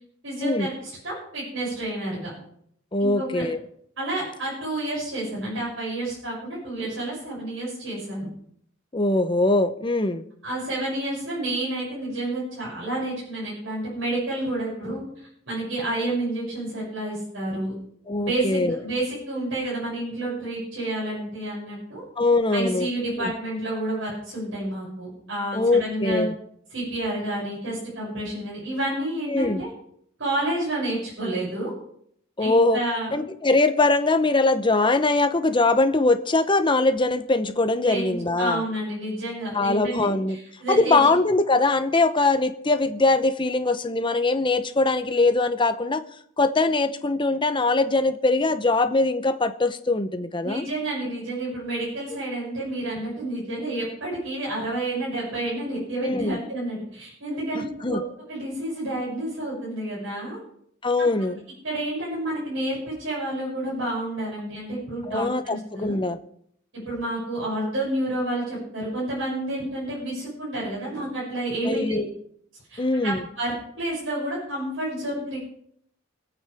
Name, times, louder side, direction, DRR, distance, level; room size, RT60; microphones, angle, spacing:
voice 1, 0.2-2.3 3.0-3.5 4.0-8.3 10.4-17.7 18.2-22.0 22.5-26.2 26.7-29.7 30.2-31.7 32.4-33.1 37.9-41.0 50.4-58.0 58.3-60.4 61.0-61.1 61.6-65.9 66.9-72.0 72.7-75.4, right 1 dB, 75° right, -7 dB, 7.3 m, -30 dB
voice 2, 2.9-3.6 8.9-10.2 18.1-18.8 22.2-23.3 25.5-26.3 29.3-29.6 32.4-32.8 33.1-38.6 39.5-40.4 40.7-46.0 46.4-50.7 56.0-56.4 57.5-58.0 60.8-61.4 65.1-66.2 71.6-72.0 72.8-73.3, left 2 dB, 25° left, 9 dB, 0.8 m, -22 dB
25.0 x 8.8 x 3.6 m, 0.68 s
head